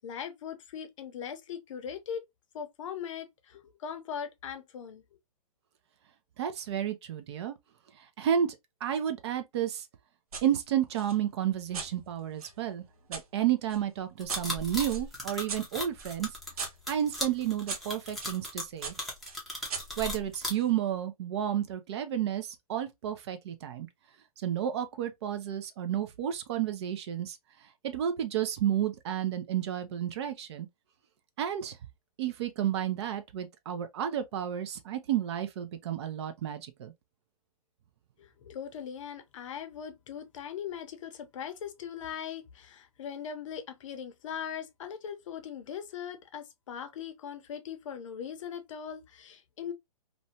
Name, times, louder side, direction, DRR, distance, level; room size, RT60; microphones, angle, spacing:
voice 1, 0.0-2.2 2.5-5.0 38.2-49.7, left 8 dB, 55° left, 0.6 m, -40 dB
voice 2, 6.4-7.6 8.0-8.6 8.8-9.9 10.4-16.3 16.9-18.9 19.6-19.7 20.0-23.9 24.4-27.4 27.8-30.7 31.4-31.8 32.2-36.9, right 10 dB, 45° right, 0.5 m, -31 dB
sound 1, 10.3-10.5 10.9-13.3 13.7-18.4 18.8-20.7, right 5 dB, 70° right, 0.9 m, -42 dB
sound 2, 14.2-20.5, left 1 dB, ahead, 0.6 m, -36 dB
2.6 x 2.2 x 2.6 m
hypercardioid pair, 150°, 19 cm